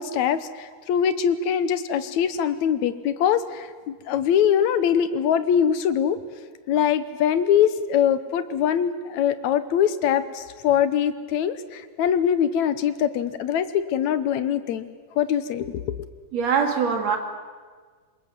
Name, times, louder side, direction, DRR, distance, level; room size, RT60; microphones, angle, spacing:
voice 1, 0.0-6.2 6.7-14.9 15.2-16.1, left 9 dB, 70° left, 12 dB, 2.2 m, -23 dB
voice 2, 16.3-17.2, right 6 dB, 60° right, 5 dB, 3.3 m, -22 dB
26.5 x 21.5 x 7.6 m, 1.5 s
omnidirectional pair, 3.5 m